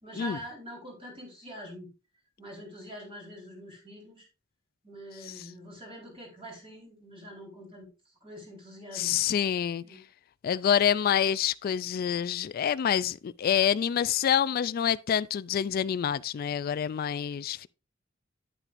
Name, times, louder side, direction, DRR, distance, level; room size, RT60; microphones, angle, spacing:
voice 1, 0.0-1.9 2.4-4.3 4.8-7.9 8.2-9.2 9.8-10.0, equal, 30° right, 4.1 m, -44 dB
voice 2, 8.9-9.8 10.4-17.7, left 9 dB, 50° left, 0.3 m, -27 dB
9.2 x 9.0 x 2.5 m
head